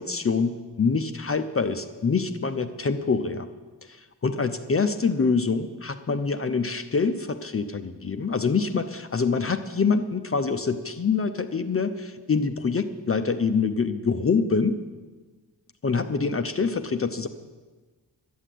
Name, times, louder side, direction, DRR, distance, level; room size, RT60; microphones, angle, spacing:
voice 1, 0.0-3.5 3.8-14.8 15.8-17.3, left 5 dB, 35° left, 9 dB, 0.6 m, -25 dB
12.0 x 7.6 x 10.0 m, 1.3 s
wide cardioid pair, 155°, 42 cm